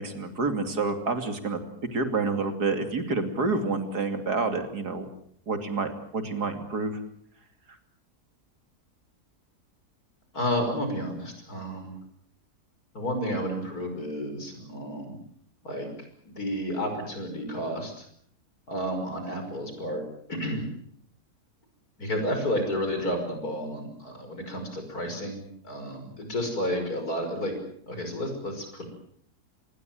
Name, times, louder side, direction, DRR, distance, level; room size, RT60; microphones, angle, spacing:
voice 1, 0.0-1.6 1.9-5.1 5.5-7.0, right 3 dB, 85° right, 7 dB, 3.2 m, -28 dB
voice 2, 10.3-12.0 12.9-15.2 15.6-15.9 16.3-18.0 18.7-20.0 20.3-20.7 22.0-27.5 27.9-28.9, equal, 70° left, 5 dB, 6.3 m, -31 dB
25.5 x 20.5 x 7.7 m, 0.65 s
omnidirectional pair, 1.7 m